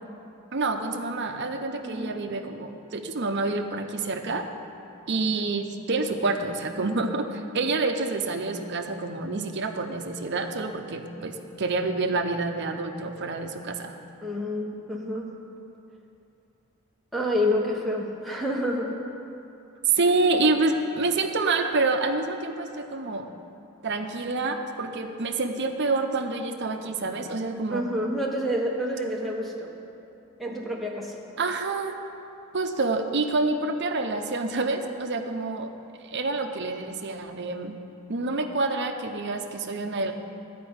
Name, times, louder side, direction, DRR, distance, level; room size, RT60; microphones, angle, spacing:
voice 1, 0.5-4.5 5.1-14.0 19.9-23.3 23.8-27.8 31.4-32.0 32.5-35.7 36.0-37.8 38.1-40.1, right 3 dB, 50° right, 6 dB, 0.7 m, -27 dB
voice 2, 1.8-2.2 14.2-15.3 17.1-19.0 27.7-29.8 30.4-31.1, left 1 dB, ahead, -2 dB, 1.1 m, -28 dB
12.0 x 5.1 x 8.7 m, 2.8 s
head